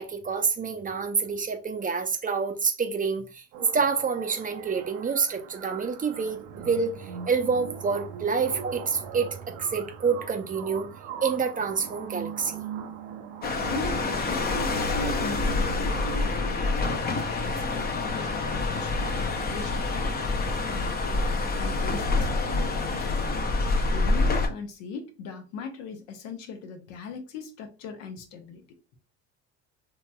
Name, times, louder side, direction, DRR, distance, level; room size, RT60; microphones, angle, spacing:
voice 1, 0.0-3.4 3.7-10.9 11.2-12.6, right 5 dB, 25° right, 0.4 m, -28 dB
sound 1, 3.5-17.5, right 8 dB, 85° right, 0.6 m, -41 dB
sound 2, 13.4-24.5, left 3 dB, 30° left, 0.5 m, -27 dB
voice 2, 13.7-17.1 17.5-20.2 20.4-21.3 21.6-23.4 23.9-28.6, left 5 dB, 80° left, 0.8 m, -39 dB
2.9 x 2.9 x 2.2 m
supercardioid pair, 85°, 34 cm